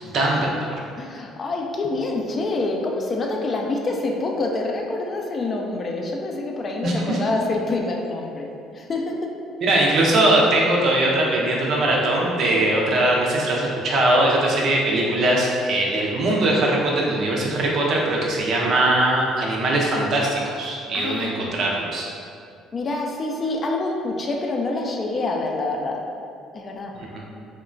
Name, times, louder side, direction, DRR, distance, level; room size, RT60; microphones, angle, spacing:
voice 1, 0.1-0.8 6.8-7.2 9.6-22.1, right 1 dB, 60° right, -2 dB, 0.5 m, -21 dB
voice 2, 1.0-8.5 8.7-9.4 20.9-21.5 22.7-26.0 26.5-26.9, left 2 dB, 40° left, 1 dB, 0.4 m, -26 dB
2.9 x 2.1 x 2.5 m, 2.4 s
supercardioid pair, 65°, 0 cm